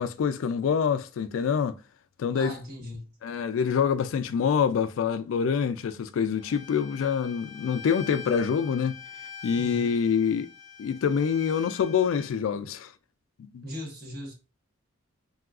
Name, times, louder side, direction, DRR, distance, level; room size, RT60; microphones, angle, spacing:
voice 1, 0.0-1.8 2.2-2.5 3.2-9.0 9.4-10.5 10.8-12.9 13.4-13.6, left 7 dB, 85° left, 0.3 m, -26 dB
voice 2, 2.3-3.1 9.6-9.9 13.6-14.3, left 1 dB, 50° right, 1.0 m, -38 dB
Bowed string instrument, 6.4-12.3, left 6 dB, 20° left, 0.6 m, -44 dB
3.6 x 2.3 x 2.3 m
head